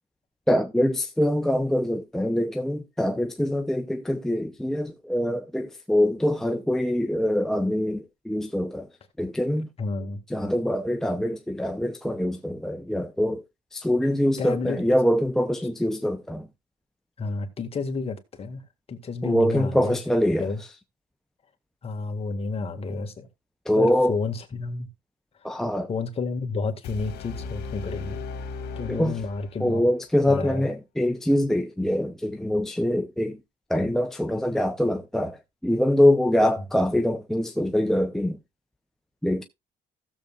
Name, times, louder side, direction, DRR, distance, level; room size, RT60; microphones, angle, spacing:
voice 1, 0.5-8.9 9.2-9.7 10.3-13.4 13.7-16.5 19.2-20.5 23.7-24.2 25.4-25.9 28.9-29.2 29.6-33.4 33.7-35.4 35.6-38.4 39.2-39.4, left 1 dB, 5° left, 0.7 m, -24 dB
voice 2, 9.8-10.2 14.4-14.8 17.2-18.6 18.9-20.0 20.4-20.6 21.8-23.3 23.7-24.9 25.9-28.2 28.8-29.9 30.3-30.7, left 4 dB, 35° left, 1.9 m, -30 dB
sound 1, 26.8-29.8, left 4 dB, 75° left, 1.8 m, -36 dB
16.0 x 7.2 x 2.4 m
cardioid pair, 110°, 17 cm